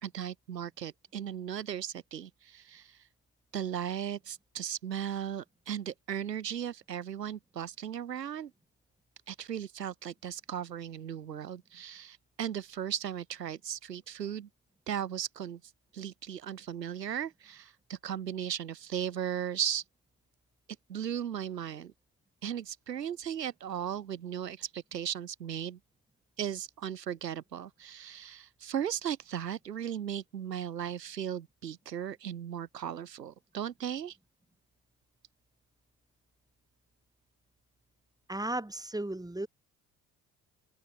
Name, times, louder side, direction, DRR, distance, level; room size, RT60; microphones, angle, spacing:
voice 1, 0.0-3.0 3.5-8.5 9.3-14.5 14.9-15.6 15.9-19.8 20.9-21.9 22.4-25.8 26.4-34.2, right 9 dB, 85° right, 1.4 m, -37 dB
voice 2, 38.3-39.5, right 1 dB, 10° right, 4.6 m, -35 dB
open air
figure-of-eight pair, 55°, 48 cm